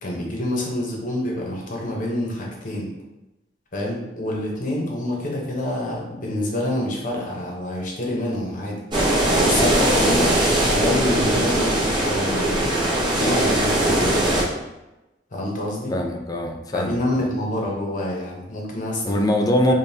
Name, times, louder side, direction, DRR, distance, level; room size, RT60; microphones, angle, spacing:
voice 1, 0.0-2.9 3.7-8.8 9.1-10.4 10.7-14.5 15.3-15.9 16.7-19.2, left 1 dB, 50° left, -2 dB, 0.8 m, -27 dB
sound 1, 8.9-14.4, right 1 dB, 25° right, 0.8 m, -20 dB
voice 2, 15.9-17.3 19.0-19.7, left 1 dB, 20° left, 4 dB, 0.4 m, -22 dB
5.1 x 2.1 x 2.7 m, 1.0 s
head